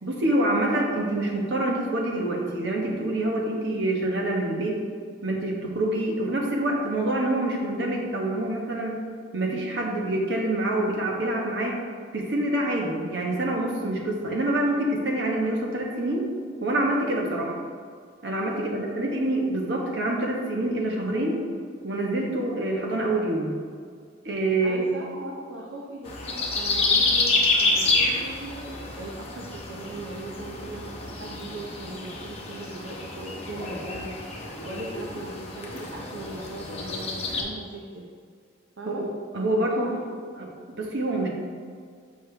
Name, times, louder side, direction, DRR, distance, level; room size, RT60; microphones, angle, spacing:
voice 1, 0.0-4.8 5.2-9.0 9.3-11.7 12.1-16.2 16.6-17.5 18.2-21.4 21.8-23.5 24.2-24.9 39.0-39.1 39.3-40.0 40.4-41.3, right 1 dB, 65° right, -1 dB, 1.2 m, -26 dB
voice 2, 18.5-18.8 24.6-28.6 28.9-34.2 34.6-38.1 38.8-39.0 39.5-40.0, right 2 dB, 80° right, -1 dB, 0.7 m, -39 dB
sound 1, 26.1-37.4, left 3 dB, 35° left, 0.9 m, -28 dB
7.2 x 5.4 x 3.3 m, 2.1 s
head